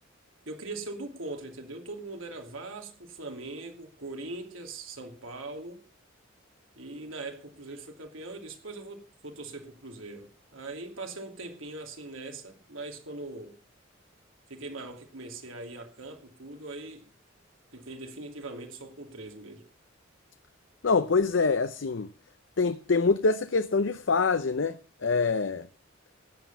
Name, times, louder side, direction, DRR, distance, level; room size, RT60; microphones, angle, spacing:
voice 1, 0.5-5.8 6.8-13.6 14.5-17.1 17.7-19.6, right 2 dB, 85° right, 2.9 m, -41 dB
voice 2, 20.8-22.1 22.6-25.7, left 4 dB, 70° left, 0.6 m, -25 dB
15.0 x 9.4 x 5.5 m
head